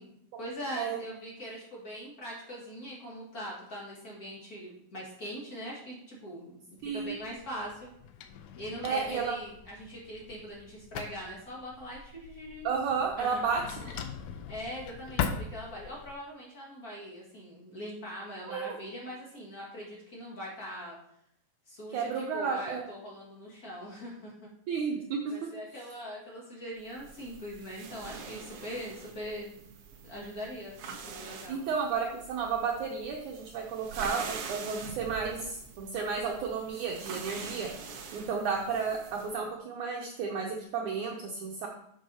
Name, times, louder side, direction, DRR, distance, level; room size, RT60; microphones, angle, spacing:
voice 1, 0.0-7.9 8.6-12.7 13.2-13.4 14.5-21.0 21.7-24.5 25.3-29.6 30.0-31.6, equal, 30° left, -4 dB, 2.0 m, -42 dB
Drawer open or close, 6.8-16.1, left 7 dB, 80° left, 1.9 m, -40 dB
voice 2, 6.8-7.2 8.8-9.3 12.6-14.0 18.5-18.8 21.9-22.9 24.7-25.3 31.5-37.7 38.1-41.7, right 5 dB, 70° right, 0 dB, 2.0 m, -32 dB
sound 1, 26.9-39.4, right 5 dB, 85° right, 1.2 m, -44 dB
7.2 x 5.5 x 5.6 m, 0.71 s
omnidirectional pair, 4.1 m